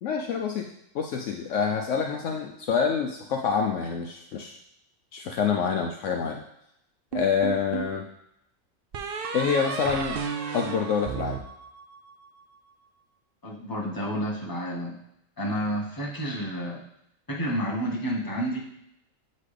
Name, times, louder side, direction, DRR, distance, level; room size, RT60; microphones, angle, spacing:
voice 1, 0.0-0.7 0.9-4.6 5.1-6.4 7.1-8.1 9.3-10.2 10.5-11.4, left 6 dB, 70° left, 2 dB, 0.9 m, -27 dB
sound 1, 7.1-8.0 8.9-12.3, right 6 dB, 60° right, 0.6 m, -33 dB
voice 2, 13.4-15.0 15.4-16.8 17.3-18.6, equal, 15° left, -4 dB, 1.2 m, -30 dB
8.6 x 4.1 x 3.3 m, 0.78 s
omnidirectional pair, 1.4 m